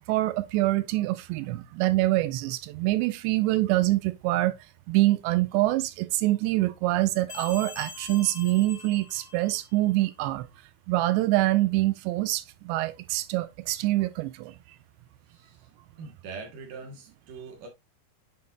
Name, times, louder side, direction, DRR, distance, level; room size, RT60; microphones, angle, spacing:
voice 1, 0.0-4.5 4.9-10.5 10.9-14.5, right 17 dB, 85° right, 2.8 m, -25 dB
sound 1, 7.3-9.9, left 4 dB, 40° left, 1.6 m, -43 dB
voice 2, 15.3-15.7 16.0-17.7, right 4 dB, 60° right, 2.7 m, -42 dB
7.9 x 5.4 x 2.4 m
omnidirectional pair, 5.0 m